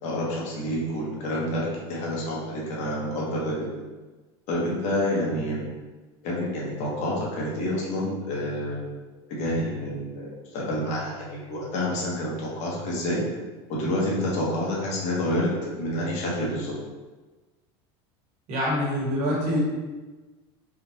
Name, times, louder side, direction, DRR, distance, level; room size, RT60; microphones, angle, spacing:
voice 1, 0.0-3.7 4.5-5.7 6.2-8.8 9.3-13.2 13.7-16.7, left 1 dB, 55° left, -4 dB, 1.1 m, -28 dB
voice 2, 18.5-19.6, equal, 55° right, -4 dB, 1.3 m, -25 dB
3.5 x 2.5 x 2.9 m, 1.2 s
supercardioid pair, 120°, 14 cm